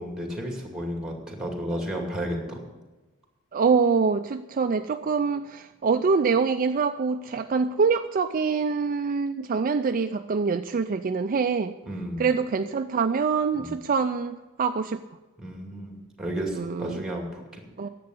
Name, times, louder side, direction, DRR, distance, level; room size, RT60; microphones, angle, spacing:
voice 1, 0.0-2.6 11.9-12.2 13.6-13.7 15.4-17.6, equal, 5° right, 2 dB, 2.5 m, -32 dB
voice 2, 3.5-11.7 12.2-15.0 16.6-17.0 17.8-17.9, right 5 dB, 40° right, 8 dB, 0.4 m, -25 dB
10.5 x 7.8 x 9.6 m, 1.1 s
head